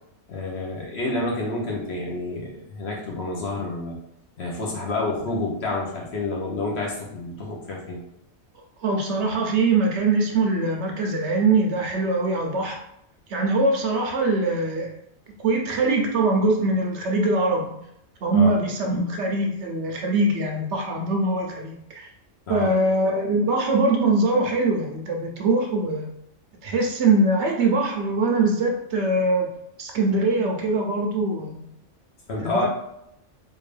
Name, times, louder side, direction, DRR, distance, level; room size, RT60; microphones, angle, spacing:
voice 1, 0.3-4.0 4.4-8.0 18.3-18.6 22.5-22.7 32.3-32.7, left 2 dB, 60° left, -1 dB, 1.0 m, -29 dB
voice 2, 8.8-12.8 13.3-14.9 15.4-17.8 18.2-22.1 22.5-26.1 26.6-29.5 29.8-31.6 32.4-32.7, right 2 dB, 65° right, 1 dB, 0.8 m, -22 dB
3.6 x 2.5 x 3.2 m, 0.77 s
omnidirectional pair, 1.4 m